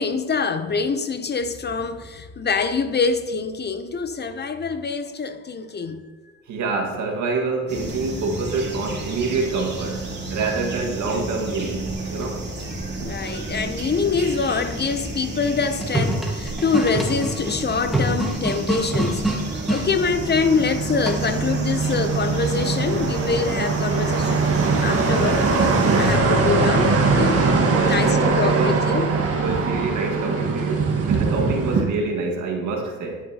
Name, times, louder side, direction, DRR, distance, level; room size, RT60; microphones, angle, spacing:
voice 1, 0.0-6.0 13.0-19.2 19.7-24.4 24.8-25.5 26.0-27.4 27.8-29.1, left 4 dB, 35° left, 0.7 m, -25 dB
voice 2, 6.5-10.0 10.3-12.4 13.0-13.1 25.8-25.9 27.7-28.8 29.3-33.2, right 3 dB, 75° right, 1.8 m, -27 dB
sound 1, 7.7-26.2, right 1 dB, 35° right, 2.8 m, -32 dB
sound 2, 15.5-19.9 21.1-21.5, right 1 dB, ahead, 2.0 m, -26 dB
sound 3, 18.4-31.8, right 4 dB, 50° right, 1.6 m, -22 dB
9.8 x 9.4 x 2.9 m
cardioid pair, 90°, 30 cm